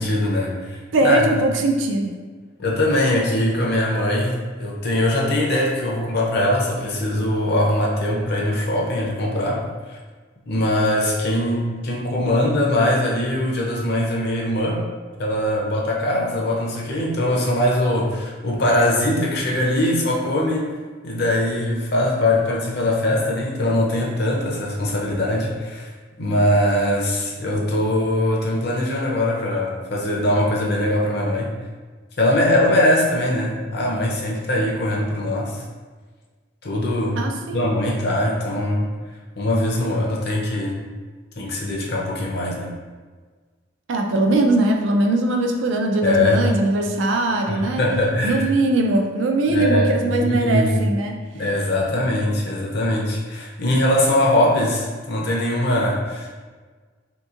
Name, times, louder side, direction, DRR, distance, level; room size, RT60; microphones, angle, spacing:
voice 1, 0.0-1.3 2.6-9.6 9.9-10.0 10.5-14.8 15.2-20.7 21.0-25.9 26.2-31.5 32.2-35.6 36.6-37.2 37.5-38.9 39.4-40.8 41.4-42.7 46.0-46.4 47.5-48.5 49.5-50.8 51.3-56.3, left 1 dB, 55° left, -2 dB, 0.6 m, -21 dB
voice 2, 0.9-2.2 37.2-37.6 43.9-47.8 48.2-51.2, right 2 dB, 75° right, 3 dB, 0.4 m, -20 dB
3.4 x 2.8 x 2.4 m, 1.4 s
head